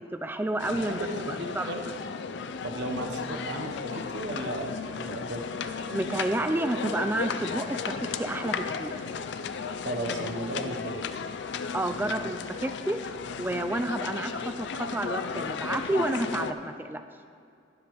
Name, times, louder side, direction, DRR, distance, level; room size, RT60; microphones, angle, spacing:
voice 1, 0.0-1.7 5.9-9.0 11.7-17.0, right 1 dB, 10° right, 8 dB, 0.3 m, -30 dB
sound 1, 0.6-16.5, left 5 dB, 65° left, 0.4 m, -35 dB
voice 2, 0.8-1.9 2.6-5.5 9.8-11.0, right 1 dB, 65° right, 3 dB, 0.8 m, -35 dB
Wind instrument woodwind instrument, 3.7-8.8, equal, 30° right, 1.9 m, -49 dB
12.5 x 10.0 x 3.0 m, 2.4 s
head